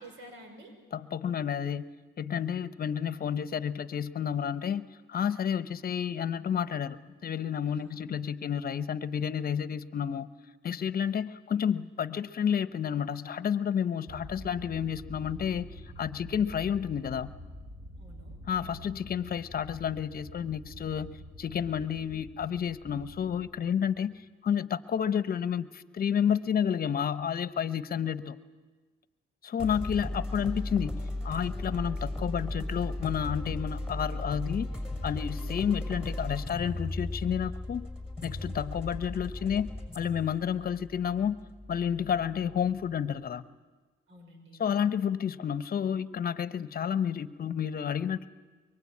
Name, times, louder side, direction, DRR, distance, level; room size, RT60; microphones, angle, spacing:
voice 1, 0.0-0.7 7.7-8.1 18.0-18.4 30.1-30.5 44.1-44.8, right 1 dB, 75° right, 5 dB, 5.9 m, -51 dB
voice 2, 0.9-1.8 2.2-10.3 10.6-15.7 16.0-17.3 18.5-24.1 24.4-28.4 29.4-34.7 35.0-37.9 38.2-39.7 39.9-41.4 41.7-43.4 44.6-48.3, left 8 dB, 50° left, 14 dB, 1.0 m, -30 dB
sound 1, 14.1-24.2, equal, 35° right, 4.8 m, -47 dB
sound 2, 29.6-43.0, left 1 dB, 5° right, 5.7 m, -36 dB
24.0 x 23.0 x 8.6 m, 1.4 s
cardioid pair, 90°, 20 cm